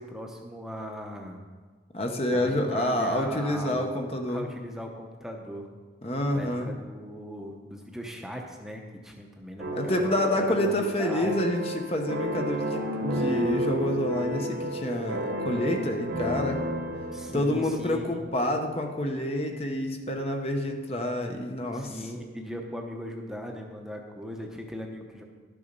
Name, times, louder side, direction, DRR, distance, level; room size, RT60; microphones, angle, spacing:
voice 1, 0.0-1.4 2.3-3.9 4.3-5.7 6.3-11.4 17.1-18.2 21.7-25.2, equal, 5° right, 1 dB, 0.8 m, -39 dB
voice 2, 1.9-4.5 6.0-6.7 9.7-16.6 17.3-22.1, left 1 dB, 35° left, 3 dB, 0.8 m, -28 dB
sound 1, 9.6-18.6, equal, 80° right, 1.7 m, -32 dB
12.0 x 7.0 x 5.2 m, 1.4 s
head